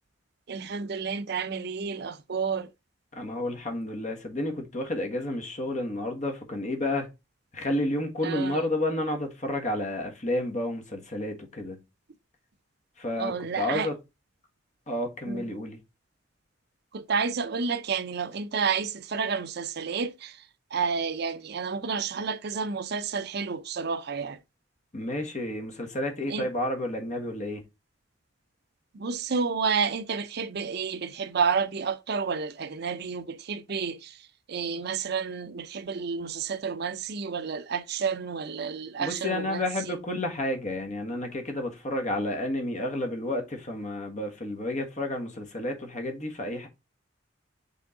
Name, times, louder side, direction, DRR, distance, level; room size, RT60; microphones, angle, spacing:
voice 1, 0.5-2.7 8.2-8.7 13.2-13.9 15.3-15.5 16.9-20.4 20.7-24.4 26.3-26.5 28.9-34.2 34.5-40.0, right 5 dB, 60° right, 0.6 m, -30 dB
voice 2, 3.1-7.1 7.5-11.8 13.0-14.0 14.9-15.8 24.9-27.6 39.0-46.7, left 1 dB, 40° left, 1.6 m, -31 dB
6.9 x 3.7 x 3.7 m
head